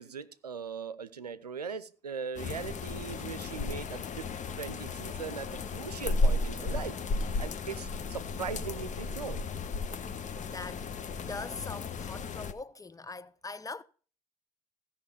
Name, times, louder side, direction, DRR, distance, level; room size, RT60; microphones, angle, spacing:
voice 1, 0.0-4.3 4.6-7.0 7.4-9.4, right 6 dB, 90° right, 0.5 m, -39 dB
sound 1, 2.4-12.5, left 3 dB, 40° left, 1.1 m, -34 dB
voice 2, 10.4-13.8, left 3 dB, 20° left, 0.8 m, -42 dB
16.0 x 5.6 x 6.6 m
figure-of-eight pair, 50°, 20 cm